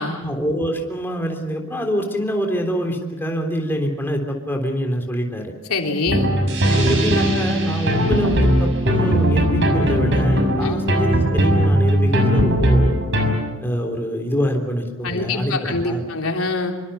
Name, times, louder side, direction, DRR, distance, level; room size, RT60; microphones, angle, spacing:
voice 1, 0.2-5.5 6.7-13.0 13.6-16.0, equal, 10° left, 2 dB, 3.6 m, -25 dB
voice 2, 5.7-6.3 10.6-10.8 15.0-16.7, left 3 dB, 85° left, 2 dB, 3.5 m, -24 dB
sound 1, 6.1-13.3, equal, 60° right, 6.0 m, -18 dB
26.0 x 24.5 x 7.0 m, 1.1 s
head